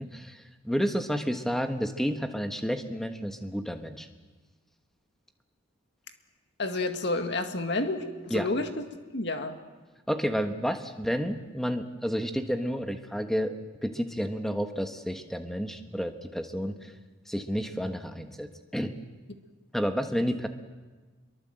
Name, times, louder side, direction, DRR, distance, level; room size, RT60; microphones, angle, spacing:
voice 1, 0.0-4.1 8.3-8.5 10.1-13.5 13.8-16.9 17.3-18.9 19.7-20.5, equal, ahead, 6 dB, 1.2 m, -30 dB
voice 2, 6.6-8.8 9.1-9.6, left 2 dB, 55° left, 6 dB, 1.9 m, -30 dB
25.5 x 23.0 x 7.8 m, 1.3 s
head